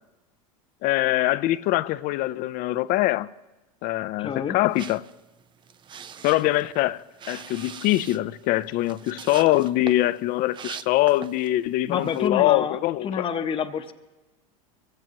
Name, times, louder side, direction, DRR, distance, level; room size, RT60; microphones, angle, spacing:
voice 1, 0.8-3.3 3.8-5.1 6.2-13.3, left 16 dB, 50° left, 0.5 m, -23 dB
voice 2, 4.2-4.6 11.9-12.8 13.0-13.9, left 7 dB, 30° left, 0.9 m, -27 dB
sound 1, 4.7-11.6 12.0-12.3, right 8 dB, 25° right, 0.5 m, -42 dB
22.5 x 15.5 x 2.9 m
hypercardioid pair, 100°, 18 cm